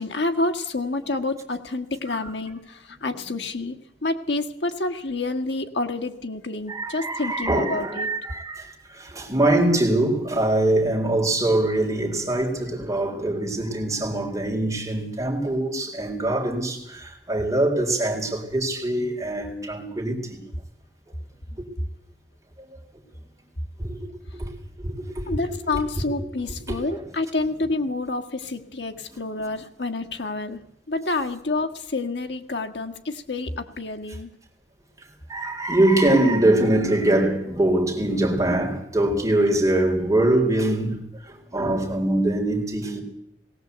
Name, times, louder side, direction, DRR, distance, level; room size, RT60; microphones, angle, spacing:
voice 1, 0.0-3.8 4.0-8.1 25.3-30.6 30.9-34.3, left 2 dB, 80° left, 1.8 m, -28 dB
voice 2, 6.7-20.4 21.5-21.7 22.6-22.8 23.8-24.1 24.3-24.5 24.8-25.8 26.7-26.8 35.3-43.0, right 1 dB, 20° right, 4.0 m, -23 dB
19.5 x 17.0 x 8.1 m
head